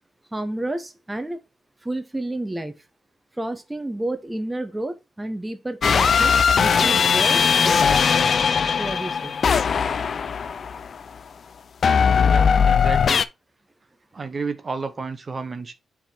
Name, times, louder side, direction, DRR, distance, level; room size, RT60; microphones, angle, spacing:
voice 1, 0.3-1.4 1.8-2.8 3.4-8.2 8.8-9.3, right 1 dB, 15° right, 0.8 m, -30 dB
sound 1, 5.8-11.0 11.8-13.2, left 6 dB, 55° left, 0.4 m, -19 dB
voice 2, 12.2-13.2 14.1-15.7, right 4 dB, 40° right, 0.8 m, -31 dB
6.9 x 3.6 x 4.3 m
cardioid pair, 90°, 0 cm